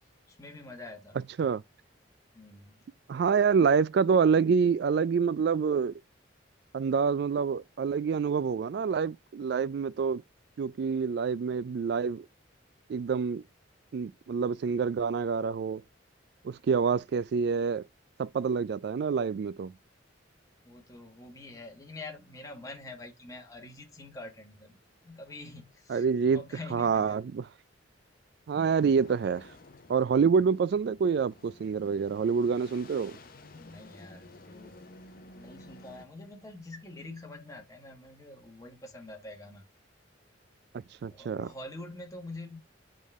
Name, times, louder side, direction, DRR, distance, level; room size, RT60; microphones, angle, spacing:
voice 1, 0.3-1.2 2.3-2.9 3.4-3.5 20.6-24.8 25.0-27.2 33.5-34.8 35.3-39.6 41.0-42.6, left 2 dB, 15° left, 1.3 m, -46 dB
voice 2, 3.1-5.9 6.7-10.2 10.6-12.3 12.9-13.4 13.9-15.8 16.4-17.8 18.2-19.7 25.9-26.4 26.7-27.4 28.5-29.5 29.9-33.2 40.7-41.5, right 6 dB, 55° right, 0.3 m, -27 dB
sound 1, 28.6-36.1, left 2 dB, 45° left, 0.7 m, -52 dB
8.4 x 3.7 x 3.5 m
head